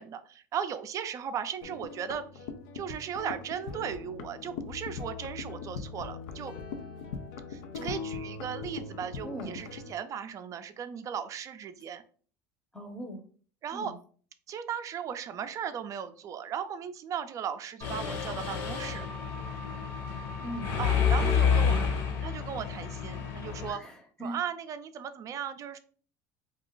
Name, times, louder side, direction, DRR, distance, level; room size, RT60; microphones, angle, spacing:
voice 1, 0.0-2.5 2.7-6.5 7.5-12.0 13.6-13.9 14.5-19.0 20.8-21.8 22.2-23.8 24.2-25.8, right 8 dB, 40° right, 10 dB, 0.4 m, -37 dB
sound 1, 1.6-9.9, left 5 dB, 80° left, 0.5 m, -40 dB
voice 2, 9.2-9.6 12.7-13.2 13.7-13.9 20.4-20.7 21.0-21.9 23.6-24.3, right 1 dB, 10° left, 3 dB, 0.7 m, -40 dB
Mechanisms, 17.8-23.7, left 7 dB, 60° left, 1.4 m, -29 dB
2.4 x 2.3 x 3.7 m, 0.43 s
supercardioid pair, 110°, 9 cm